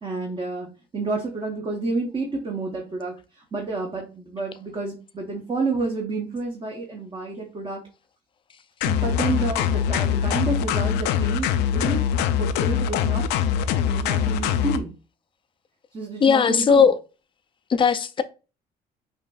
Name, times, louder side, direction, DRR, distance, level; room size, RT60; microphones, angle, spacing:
voice 1, 0.0-0.7 0.9-7.8 8.9-13.3 13.9-14.9 15.9-16.8, right 3 dB, 30° right, 0.9 m, -29 dB
sound 1, 8.8-14.8, left 8 dB, 90° left, 0.4 m, -23 dB
voice 2, 16.2-17.0 17.7-18.2, left 6 dB, 30° left, 0.4 m, -17 dB
5.2 x 2.5 x 2.3 m
cardioid pair, 110°, 17 cm